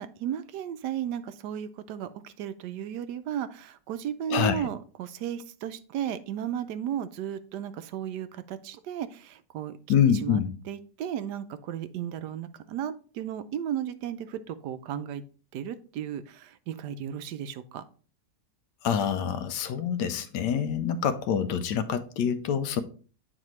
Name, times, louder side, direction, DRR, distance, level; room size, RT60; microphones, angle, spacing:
voice 1, 0.0-9.7 10.2-10.4 10.7-15.2 15.5-17.8, right 9 dB, 80° right, 12 dB, 1.1 m, -34 dB
voice 2, 4.3-4.7 9.9-10.5 18.8-22.8, left 8 dB, 80° left, 11 dB, 1.2 m, -26 dB
8.7 x 4.1 x 3.1 m, 0.39 s
omnidirectional pair, 1.8 m